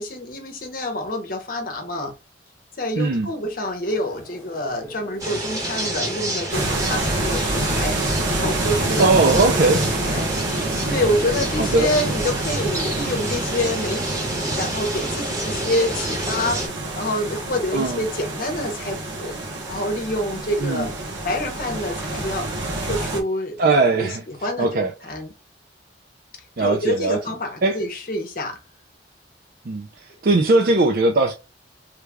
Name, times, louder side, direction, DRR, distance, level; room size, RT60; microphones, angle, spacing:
voice 1, 0.0-2.1 2.8-10.5 10.9-16.7 17.0-19.3 19.7-21.0 21.2-22.5 22.8-23.6 24.0-25.3 26.6-28.6, left 1 dB, 50° left, 0.8 m, -27 dB
voice 2, 3.0-3.3 9.0-9.8 11.6-11.9 17.7-18.0 20.6-20.9 23.6-24.2 24.6-24.9 26.6-27.2 27.6-27.8 29.7-29.9 30.2-31.3, right 3 dB, 55° right, 0.4 m, -19 dB
sound 1, 3.9-11.8, left 1 dB, 15° left, 1.1 m, -43 dB
sound 2, 5.2-16.7, right 1 dB, 20° right, 1.1 m, -29 dB
sound 3, 6.5-23.2, right 2 dB, 90° right, 1.1 m, -27 dB
3.3 x 2.4 x 3.3 m
head